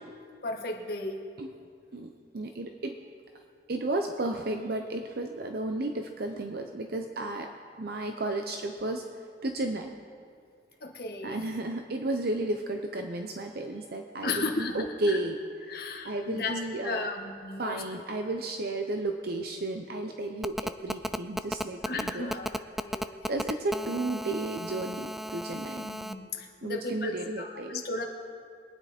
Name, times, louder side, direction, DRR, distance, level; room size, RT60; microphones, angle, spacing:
voice 1, 0.4-1.2 10.8-11.5 14.2-14.8 15.1-15.2 15.7-17.8 21.9-22.5 22.8-23.2 25.8-28.0, left 3 dB, 60° left, 1 dB, 1.6 m, -35 dB
voice 2, 1.9-3.0 3.7-7.5 7.8-9.0 9.4-9.9 11.2-17.1 17.6-22.3 23.3-25.9 26.6-27.8, right 2 dB, 60° right, 4 dB, 0.7 m, -33 dB
Telephone, 20.4-26.1, equal, ahead, 0.3 m, -34 dB
22.5 x 9.6 x 4.3 m, 2.3 s
head